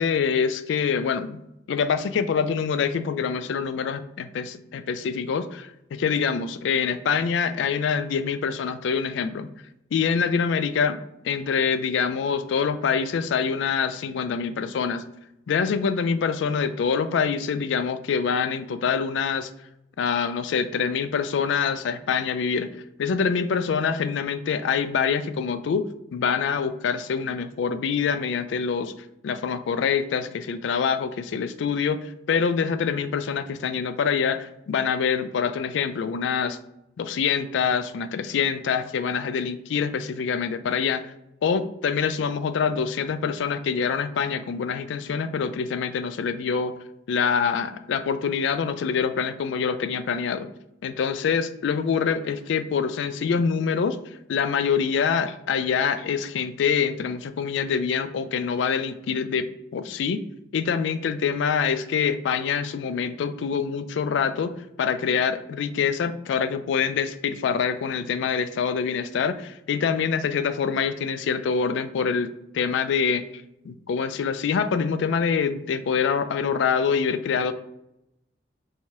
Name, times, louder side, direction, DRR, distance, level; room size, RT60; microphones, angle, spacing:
voice 1, 0.0-1.4 1.7-9.5 9.9-11.0 11.2-15.0 15.5-19.5 20.0-22.7 23.0-28.9 29.2-36.6 37.0-41.1 41.4-46.7 47.1-50.5 50.8-54.0 54.3-59.5 59.7-60.2 60.5-77.5, left 6 dB, 70° left, 11 dB, 0.3 m, -25 dB
4.7 x 2.7 x 3.0 m, 0.84 s
head